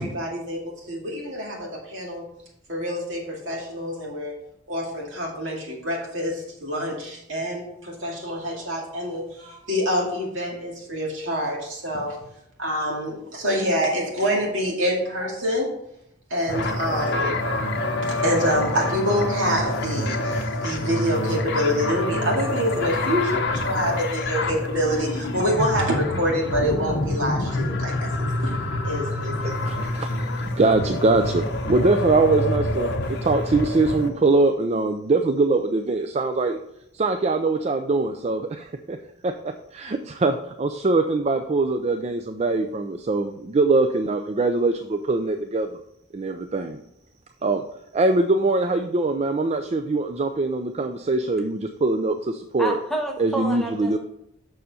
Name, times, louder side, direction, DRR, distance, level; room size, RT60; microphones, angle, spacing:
voice 1, 0.0-2.2 2.7-4.3 4.7-12.2 12.6-15.7 16.3-17.4 18.1-28.5 28.8-29.8, equal, 70° right, -2 dB, 2.3 m, -26 dB
sound 1, 16.5-34.1, left 1 dB, 55° left, 0.9 m, -27 dB
voice 2, 29.4-36.6 36.9-39.0 39.2-45.7 46.1-46.8 47.4-47.6 47.9-52.8 53.2-54.0, right 3 dB, 35° right, 7 dB, 0.4 m, -23 dB
voice 3, 52.6-54.0, right 1 dB, ahead, 0 dB, 0.9 m, -29 dB
6.9 x 6.4 x 4.2 m, 0.78 s
head